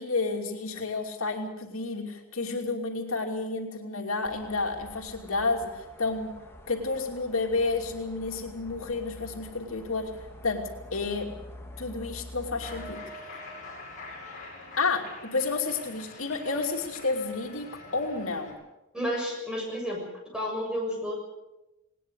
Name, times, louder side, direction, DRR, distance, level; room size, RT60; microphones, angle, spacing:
voice 1, 0.0-6.3 6.7-10.1 10.4-10.6 10.9-11.3 11.8-13.0 14.8-17.7 17.9-18.6, left 3 dB, 80° left, 3 dB, 2.9 m, -30 dB
sound 1, 4.2-12.9, left 1 dB, 10° left, 1.9 m, -47 dB
Cheering, 12.6-18.5, left 2 dB, 40° left, 6.7 m, -44 dB
voice 2, 18.9-20.0 20.3-21.2, equal, 5° right, -1 dB, 6.7 m, -31 dB
20.0 x 19.0 x 8.1 m, 0.96 s
head